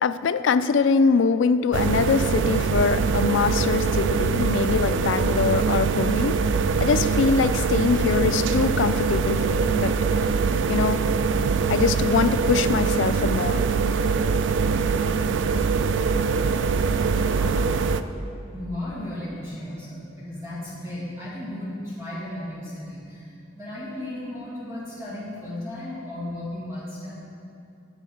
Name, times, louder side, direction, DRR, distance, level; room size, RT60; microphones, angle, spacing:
voice 1, 0.0-6.4 6.8-9.9 10.7-11.0 11.7-13.6, left 5 dB, 75° left, 12 dB, 0.4 m, -23 dB
sound 1, 1.7-18.0, right 5 dB, 70° right, 0.3 m, -23 dB
voice 2, 16.7-17.7 18.5-27.2, left 1 dB, 15° right, -10 dB, 2.2 m, -35 dB
8.1 x 7.4 x 5.7 m, 2.6 s
head